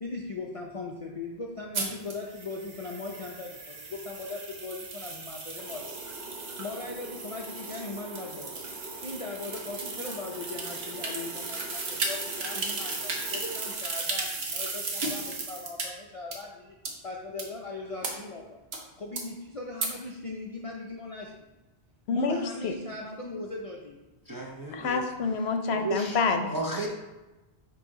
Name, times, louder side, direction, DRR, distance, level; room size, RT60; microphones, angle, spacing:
voice 1, 0.0-6.0 6.6-8.6 9.0-16.8 17.0-18.6 19.0-21.3 22.1-24.0, left 3 dB, 40° left, -1 dB, 0.5 m, -39 dB
sound 1, 1.7-15.9 16.3-16.4 16.9-17.0 17.4-17.5 18.0-18.1 18.7-18.8 19.2-19.3 19.8-19.9, right 3 dB, 70° right, 1.2 m, -35 dB
sound 2, 5.6-13.7, right 2 dB, 50° right, 0.9 m, -45 dB
voice 2, 22.1-22.7 24.7-26.5, left 4 dB, 75° left, 6 dB, 0.9 m, -28 dB
voice 3, 24.3-25.0 25.7-26.2 26.5-26.9, right 2 dB, 25° right, -2 dB, 0.6 m, -33 dB
6.2 x 3.1 x 4.8 m, 1.1 s
omnidirectional pair, 1.1 m